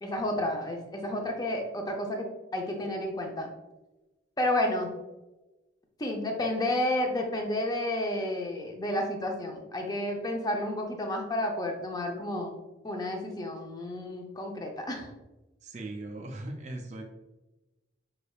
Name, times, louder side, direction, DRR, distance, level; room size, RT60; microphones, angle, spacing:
voice 1, 0.0-3.5 4.4-4.9 6.0-12.5 12.8-15.1, left 1 dB, 20° left, 2 dB, 0.5 m, -31 dB
voice 2, 15.6-17.0, right 2 dB, 35° right, 2 dB, 0.4 m, -39 dB
5.2 x 3.4 x 2.3 m, 1.1 s
head